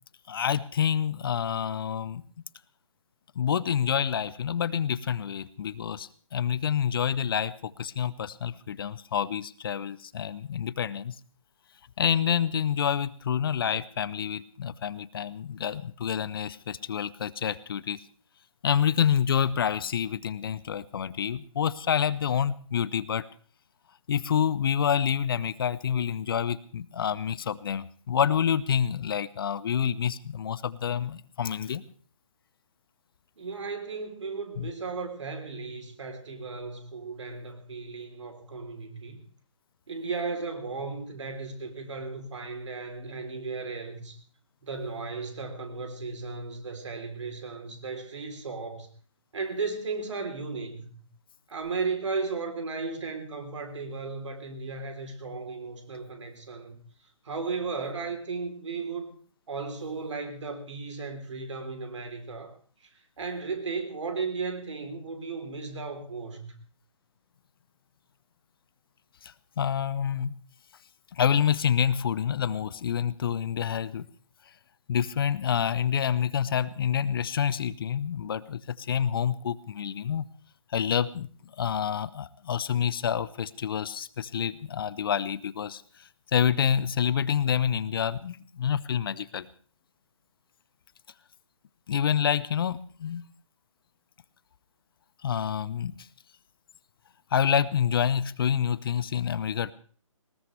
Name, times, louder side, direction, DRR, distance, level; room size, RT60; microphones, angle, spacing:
voice 1, 0.3-2.2 3.4-11.2 12.0-18.0 18.6-23.2 24.1-31.8 34.6-34.7 69.2-70.4 71.1-74.0 74.9-80.3 80.7-81.3 81.6-85.8 86.3-89.5 91.9-93.2 95.2-95.9 97.3-99.7, left 8 dB, 45° left, 18 dB, 0.6 m, -27 dB
voice 2, 33.4-39.2 39.9-44.2 44.6-48.9 49.3-51.0 51.5-56.8 57.2-59.1 59.5-62.5 62.8-62.9 63.2-66.5, right 4 dB, 60° right, 6 dB, 3.5 m, -35 dB
19.5 x 18.5 x 3.3 m, 0.43 s
figure-of-eight pair, 145°, 17 cm